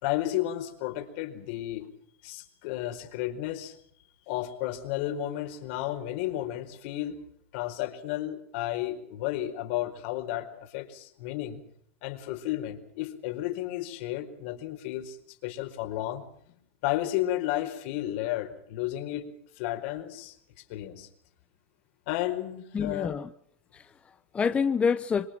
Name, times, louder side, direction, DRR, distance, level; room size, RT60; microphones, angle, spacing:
voice 1, 0.0-1.9 2.2-3.7 4.3-7.1 7.5-11.6 12.0-15.2 15.4-16.2 16.8-19.2 19.6-20.4 20.7-21.1 22.1-23.1, left 14 dB, 60° left, 6 dB, 4.6 m, -32 dB
voice 2, 22.7-23.3 23.7-25.3, left 6 dB, 20° left, 9 dB, 1.0 m, -28 dB
26.5 x 22.0 x 6.0 m, 0.66 s
hypercardioid pair, 125°, 7 cm